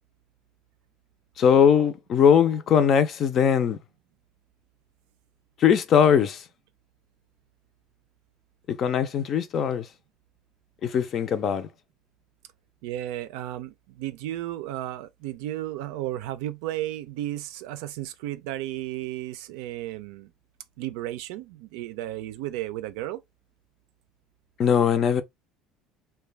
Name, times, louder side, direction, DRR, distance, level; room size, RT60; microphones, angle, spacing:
voice 1, 1.4-3.8 5.6-6.4 8.7-9.9 10.8-11.7 24.6-25.2, left 8 dB, 40° left, 0.5 m, -20 dB
voice 2, 12.8-20.3 20.8-23.2, right 14 dB, 85° right, 0.4 m, -34 dB
2.4 x 2.2 x 3.3 m
cardioid pair, 145°, 0 cm